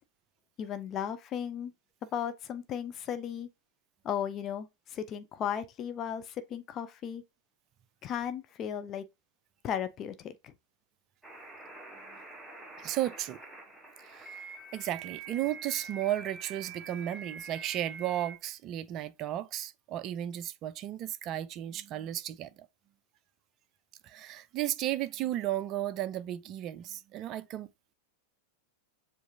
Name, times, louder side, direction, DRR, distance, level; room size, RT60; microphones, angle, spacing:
voice 1, 0.6-1.7 2.1-3.5 4.0-7.2 8.0-9.0 9.6-10.5, left 9 dB, 30° left, 0.4 m, -35 dB
sound 1, 11.2-18.4, right 4 dB, 5° right, 1.0 m, -46 dB
voice 2, 12.8-13.4 14.0-22.7 24.0-27.7, right 13 dB, 35° right, 0.4 m, -34 dB
7.1 x 2.5 x 2.7 m
figure-of-eight pair, 90°, 0 cm